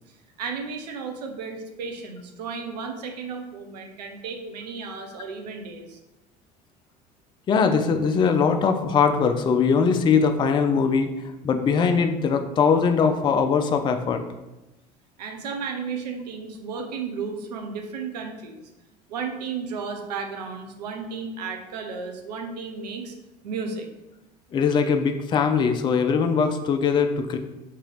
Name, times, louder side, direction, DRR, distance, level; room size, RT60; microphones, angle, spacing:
voice 1, 0.4-6.0 15.2-18.7 19.1-23.1 23.4-23.9, right 5 dB, 75° right, 4 dB, 0.6 m, -33 dB
voice 2, 7.5-11.1 11.4-14.2 24.5-27.4, left 5 dB, 20° left, 6 dB, 0.3 m, -21 dB
3.7 x 2.8 x 3.2 m, 1.0 s
figure-of-eight pair, 65°, 21 cm